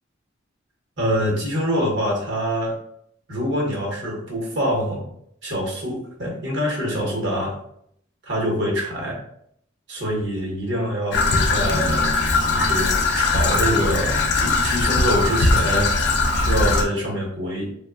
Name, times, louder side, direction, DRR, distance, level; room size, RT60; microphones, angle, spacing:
voice 1, 1.0-2.8 3.3-5.1 5.4-7.5 8.2-9.2 9.9-12.1 12.5-15.9 16.3-17.7, equal, 65° right, -1 dB, 1.0 m, -25 dB
Traffic noise roadway noise / Trickle dribble, 11.1-16.8, left 3 dB, 60° left, 0.4 m, -20 dB
3.1 x 2.3 x 2.3 m, 0.68 s
head